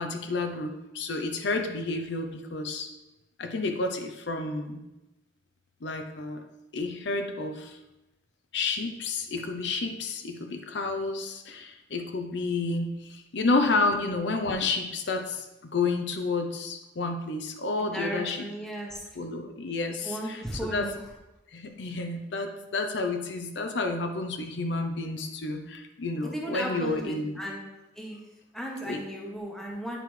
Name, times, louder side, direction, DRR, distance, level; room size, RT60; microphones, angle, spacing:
voice 1, 0.0-2.9 3.4-4.8 5.8-6.4 6.7-7.8 8.5-18.5 19.2-20.9 21.5-27.4 28.8-29.0, left 3 dB, 70° left, 6 dB, 0.6 m, -30 dB
voice 2, 17.8-19.0 20.0-21.0 26.2-27.6 28.0-28.2 28.5-30.0, equal, ahead, -1 dB, 1.0 m, -35 dB
8.9 x 4.9 x 3.2 m, 0.98 s
head